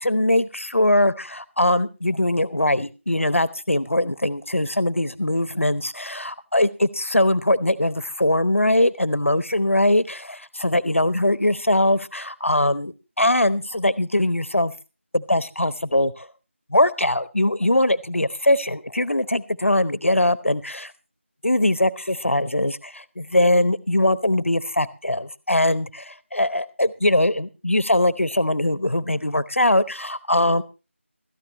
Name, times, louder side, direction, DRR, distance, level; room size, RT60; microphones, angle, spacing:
voice 1, 0.0-14.7 15.1-16.3 16.7-20.9 21.4-30.6, left 1 dB, 75° left, 16 dB, 1.0 m, -21 dB
16.5 x 13.5 x 3.0 m, 0.31 s
figure-of-eight pair, 170°, 7 cm